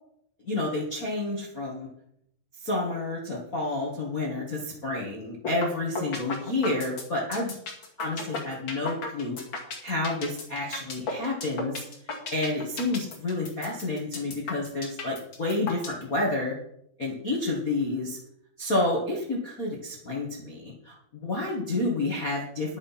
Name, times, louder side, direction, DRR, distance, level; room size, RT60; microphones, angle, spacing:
voice 1, 0.4-1.9 2.6-7.5 8.0-9.4 9.8-11.8 12.3-16.5 17.0-18.2 18.6-22.8, left 2 dB, 55° left, -2 dB, 0.9 m, -29 dB
sound 1, 5.4-5.7 6.0-16.0, left 4 dB, 35° left, 2.3 m, -34 dB
11.0 x 7.9 x 5.8 m, 0.75 s
omnidirectional pair, 4.8 m